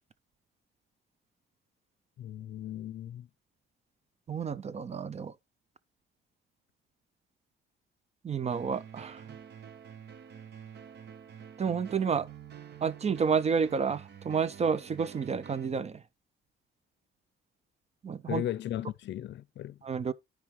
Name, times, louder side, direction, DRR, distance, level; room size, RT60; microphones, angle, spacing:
voice 1, 2.2-3.3 18.3-19.8, left 12 dB, 65° left, 0.5 m, -36 dB
voice 2, 4.3-5.3 8.2-9.2 11.6-12.3 12.8-16.0 18.0-18.4 19.8-20.1, right 6 dB, 35° right, 0.5 m, -30 dB
sound 1, 8.5-15.7, right 8 dB, 60° right, 1.0 m, -48 dB
12.0 x 4.9 x 3.1 m
cardioid pair, 90°, 20 cm